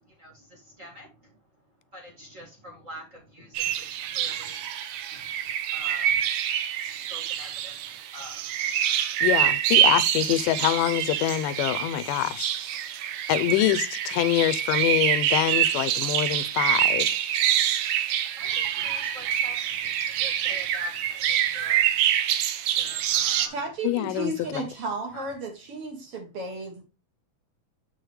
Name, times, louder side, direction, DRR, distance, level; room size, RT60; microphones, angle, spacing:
voice 1, 0.0-1.4 1.9-8.8 13.2-13.3 17.5-17.6 18.3-23.6 24.0-24.8 25.1-25.3, equal, 30° right, 1.7 m, -47 dB
sound 1, 3.5-23.5, right 11 dB, 85° right, 2.3 m, -26 dB
voice 2, 9.2-12.5 13.3-17.1 23.8-24.6, left 13 dB, 85° left, 2.2 m, -25 dB
voice 3, 23.5-26.8, right 2 dB, 50° right, 2.2 m, -33 dB
7.6 x 6.3 x 3.2 m
omnidirectional pair, 3.7 m